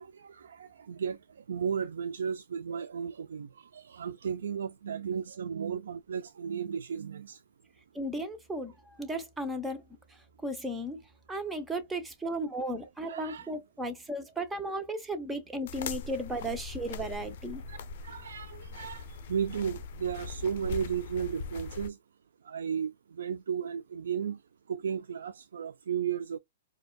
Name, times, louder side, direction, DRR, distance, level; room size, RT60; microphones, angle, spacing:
voice 1, 0.0-7.4 13.1-13.5 17.7-22.0 22.4-24.4 24.7-26.4, right 7 dB, 85° right, 0.3 m, -34 dB
voice 2, 7.9-9.8 10.1-11.0 11.3-17.6, right 1 dB, 5° right, 0.7 m, -35 dB
sound 1, 15.7-21.9, left 4 dB, 50° left, 0.5 m, -41 dB
4.5 x 2.2 x 2.2 m
hypercardioid pair, 155°, 0 cm